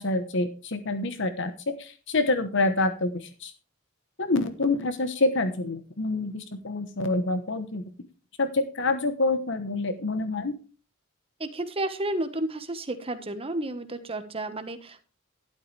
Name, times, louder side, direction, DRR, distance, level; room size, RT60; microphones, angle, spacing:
voice 1, 0.0-1.5 1.8-3.5 4.2-7.8 8.4-10.5, left 2 dB, 60° left, 10 dB, 1.1 m, -27 dB
voice 2, 11.4-15.0, right 1 dB, 30° right, 9 dB, 1.3 m, -32 dB
12.5 x 12.0 x 3.3 m, 0.34 s
head